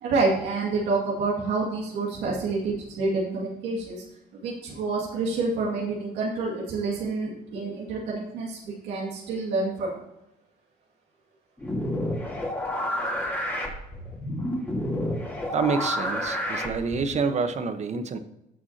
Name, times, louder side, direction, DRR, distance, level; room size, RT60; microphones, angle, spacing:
voice 1, 0.0-4.0 4.4-9.9, right 3 dB, 90° right, -3 dB, 2.2 m, -28 dB
sound 1, 11.6-17.1, left 1 dB, 10° left, 3.0 m, -29 dB
voice 2, 15.5-18.2, right 5 dB, 40° right, 10 dB, 1.0 m, -27 dB
16.0 x 6.1 x 2.8 m, 0.89 s
cardioid pair, 110°, 17 cm